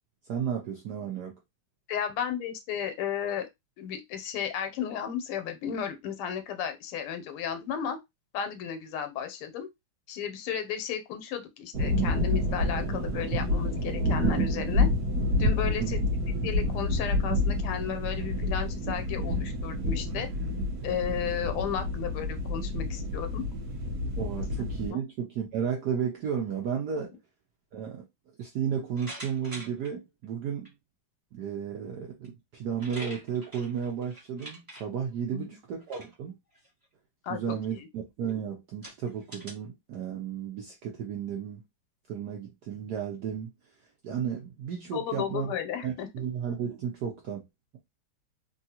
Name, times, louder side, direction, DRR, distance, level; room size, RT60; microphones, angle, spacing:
voice 1, 0.3-1.3 15.7-15.9 24.2-27.1 27.7-28.0 28.4-30.7 31.3-36.4 37.3-41.6 42.1-43.5 44.0-45.5 45.8-47.5, right 7 dB, 75° right, 0.9 m, -33 dB
voice 2, 1.9-3.5 3.8-8.0 8.3-9.7 10.1-14.9 15.4-16.0 16.4-20.3 20.8-23.4 24.9-25.0 35.3-35.6 37.2-37.6 44.9-46.1, left 8 dB, 80° left, 1.5 m, -34 dB
sound 1, 11.7-24.9, left 1 dB, 55° right, 1.2 m, -28 dB
sound 2, 29.0-29.9 30.6-30.7 32.2-32.3 32.6-34.8 35.8-36.2 36.5-36.8 37.5-37.6 38.3-38.4 38.8-39.5, right 1 dB, 10° right, 1.2 m, -44 dB
3.7 x 2.3 x 2.8 m
omnidirectional pair, 2.4 m